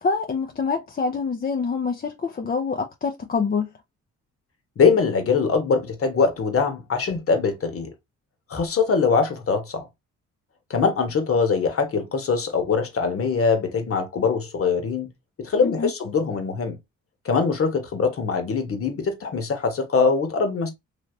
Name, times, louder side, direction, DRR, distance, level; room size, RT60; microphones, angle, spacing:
voice 1, 0.0-3.7 15.6-15.9, left 5 dB, 30° left, 0.6 m, -26 dB
voice 2, 4.8-7.9 8.5-9.9 10.7-15.1 15.4-16.8 17.2-20.7, left 5 dB, 50° left, 1.3 m, -22 dB
3.3 x 2.8 x 2.7 m
cardioid pair, 75°, 29 cm